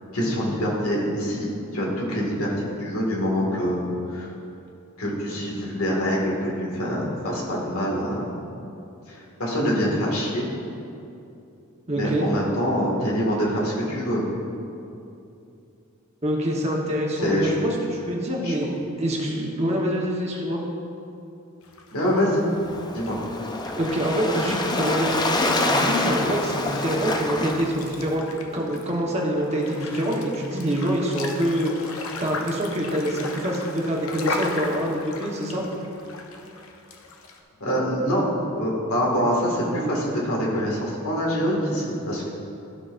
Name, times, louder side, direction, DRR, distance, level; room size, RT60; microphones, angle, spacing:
voice 1, 0.1-3.8 4.1-4.3 5.0-8.3 9.1-10.4 11.9-14.2 17.2-17.5 18.4-18.5 21.9-22.4 22.9-23.2 37.6-38.2 38.5-42.3, equal, 85° left, -4 dB, 2.0 m, -25 dB
voice 2, 11.9-12.3 16.2-20.6 23.8-28.2 28.5-35.6, equal, 30° right, -2 dB, 1.1 m, -25 dB
sound 1, 21.6-37.4, left 3 dB, 65° left, 0.8 m, -37 dB
Waves surf, 22.4-28.1, left 2 dB, 20° left, 0.4 m, -27 dB
14.5 x 5.9 x 2.5 m, 2.7 s
head